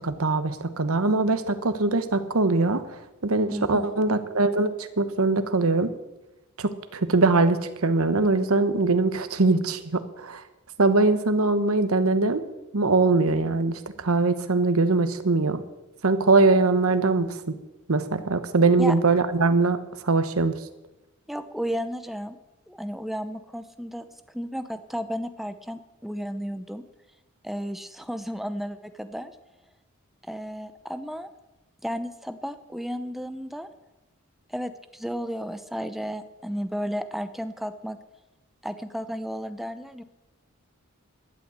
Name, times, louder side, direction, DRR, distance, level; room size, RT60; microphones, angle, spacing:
voice 1, 0.0-2.8 3.2-5.9 6.6-10.4 10.8-12.4 12.7-15.6 16.0-17.6 17.9-19.8 20.0-20.6, right 3 dB, 85° right, 11 dB, 1.1 m, -22 dB
voice 2, 3.5-3.9 18.8-18.9 21.3-22.4 22.7-26.8 27.4-29.3 30.3-31.3 31.8-33.7 34.5-38.0 38.6-40.0, equal, ahead, 10 dB, 0.8 m, -33 dB
12.0 x 8.4 x 8.2 m, 0.99 s
head